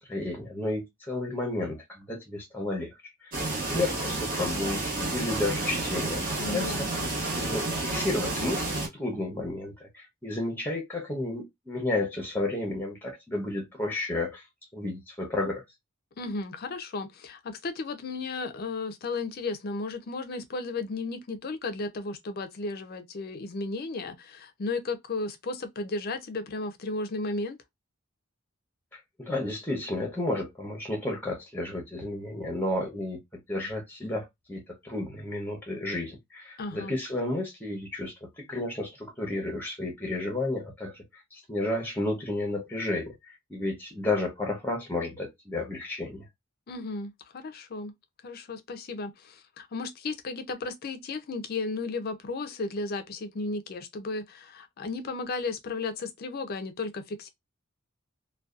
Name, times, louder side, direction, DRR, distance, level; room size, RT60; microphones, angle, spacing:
voice 1, 0.0-2.9 3.2-6.9 7.4-14.4 14.7-15.6 28.9-33.2 33.5-46.3, left 2 dB, 10° left, 0.7 m, -32 dB
sound 1, 3.3-8.9, right 2 dB, 40° right, 0.8 m, -30 dB
voice 2, 6.4-6.9 16.2-27.6 36.6-37.0 46.7-47.9 48.2-57.3, left 3 dB, 45° left, 0.4 m, -34 dB
2.6 x 2.1 x 2.3 m
head